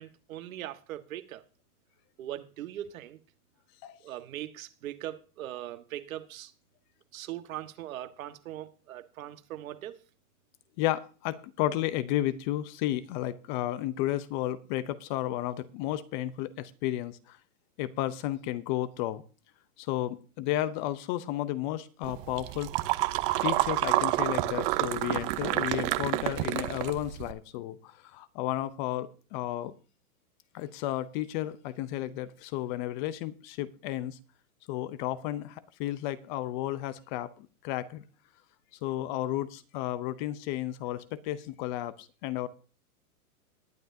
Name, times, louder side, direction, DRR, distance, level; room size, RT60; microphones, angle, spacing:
voice 1, 0.0-1.4 2.2-3.2 4.0-6.5 7.1-10.0, right 13 dB, 65° right, 1.5 m, -40 dB
voice 2, 10.8-17.1 17.8-19.2 19.8-22.7 23.4-27.8 28.1-29.7 30.5-34.2 34.7-37.3 37.6-38.0 38.8-41.9 42.2-42.5, left 14 dB, 35° left, 0.7 m, -32 dB
sound 1, 22.0-27.3, right 17 dB, 35° right, 0.8 m, -29 dB
20.0 x 9.2 x 2.7 m
hypercardioid pair, 135°, 45 cm